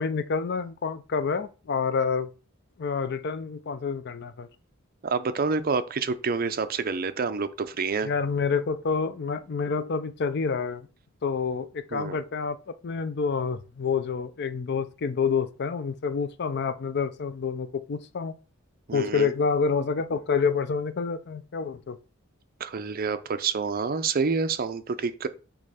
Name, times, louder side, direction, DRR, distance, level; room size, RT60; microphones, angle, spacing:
voice 1, 0.0-2.3 2.8-4.5 8.0-10.9 11.2-18.4 18.9-22.0, left 5 dB, 55° left, 0.5 m, -28 dB
voice 2, 5.0-8.1 11.9-12.2 18.9-19.3 22.6-25.3, right 4 dB, 45° right, 0.5 m, -28 dB
6.3 x 3.2 x 4.9 m
head